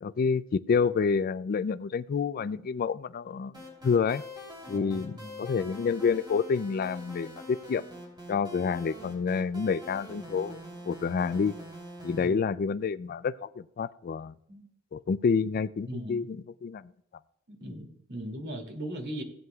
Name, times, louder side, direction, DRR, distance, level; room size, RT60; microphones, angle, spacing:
voice 1, 0.0-3.5 3.8-4.2 4.7-7.9 8.3-10.6 10.8-11.5 12.0-14.3 14.9-16.8, left 5 dB, 45° left, 16 dB, 0.3 m, -28 dB
sound 1, 3.5-12.3, equal, 20° right, 3.4 m, -45 dB
voice 2, 4.7-5.5 12.1-12.4 14.5-14.7 15.9-16.3 17.5-19.2, right 1 dB, 55° right, 3 dB, 2.5 m, -39 dB
17.5 x 9.3 x 2.3 m, 0.75 s
head